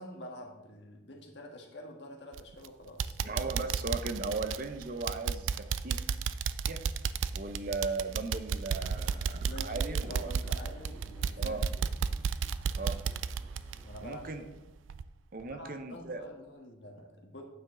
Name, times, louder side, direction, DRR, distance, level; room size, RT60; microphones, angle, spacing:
voice 1, 0.0-3.2 9.3-11.7 13.8-14.2 15.4-17.4, equal, 60° left, 1 dB, 1.6 m, -47 dB
sound 1, 2.3-2.7 3.0-14.6 14.9-15.0 15.5-15.6, right 6 dB, 80° right, 0.4 m, -33 dB
voice 2, 3.2-5.5 5.8-6.0 6.7-6.8 7.3-10.3 11.4-11.6 12.8-13.0 14.0-14.4 15.3-16.2, right 3 dB, 45° right, 8 dB, 0.7 m, -37 dB
sound 2, 8.7-14.1, equal, 10° right, 0.8 m, -53 dB
9.2 x 7.1 x 3.8 m, 1.1 s
head